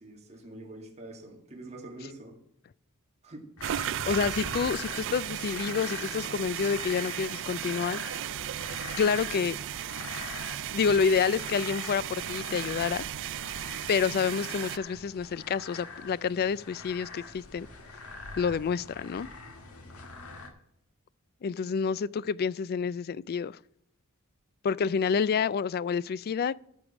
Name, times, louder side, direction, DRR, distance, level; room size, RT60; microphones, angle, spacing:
voice 1, 0.0-2.4 3.2-3.5, right 2 dB, 30° right, 2.1 m, -45 dB
sound 1, 3.6-20.5, left 3 dB, 75° left, 1.9 m, -43 dB
sound 2, 3.6-14.8, right 12 dB, 60° right, 0.3 m, -36 dB
voice 2, 4.0-8.0 9.0-9.6 10.7-13.0 13.9-17.7 18.4-19.3 21.4-23.6 24.6-26.6, left 6 dB, 45° left, 0.3 m, -28 dB
14.0 x 4.9 x 7.1 m
head